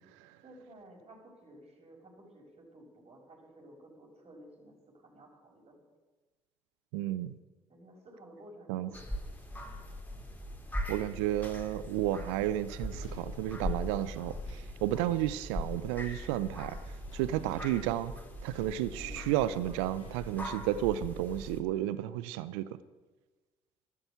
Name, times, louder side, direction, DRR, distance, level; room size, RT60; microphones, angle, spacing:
voice 1, 0.4-5.8 7.7-9.4, right 1 dB, 40° right, 1 dB, 5.8 m, -54 dB
voice 2, 6.9-7.4 8.7-8.9 10.9-14.4 14.8-16.8 17.1-18.1 18.4-22.8, right 13 dB, 70° right, 16 dB, 0.7 m, -32 dB
sound 1, 8.9-21.6, left 1 dB, 10° left, 3.4 m, -41 dB
sound 2, 12.9-20.2, left 3 dB, 85° left, 3.4 m, -56 dB
13.5 x 12.5 x 8.2 m, 1.3 s
figure-of-eight pair, 50°, 15 cm